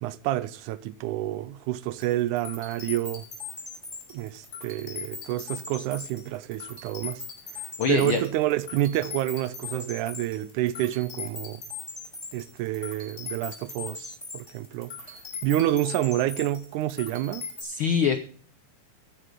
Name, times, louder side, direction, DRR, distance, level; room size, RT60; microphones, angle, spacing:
voice 1, 0.0-3.2 4.1-7.2 7.9-11.6 12.3-14.9 15.4-17.4, right 14 dB, 85° right, 2.2 m, -28 dB
sound 1, 2.0-17.6, left 4 dB, 20° left, 5.6 m, -40 dB
voice 2, 7.8-8.2 17.6-18.2, left 7 dB, 70° left, 1.2 m, -24 dB
15.0 x 9.3 x 3.8 m
omnidirectional pair, 3.5 m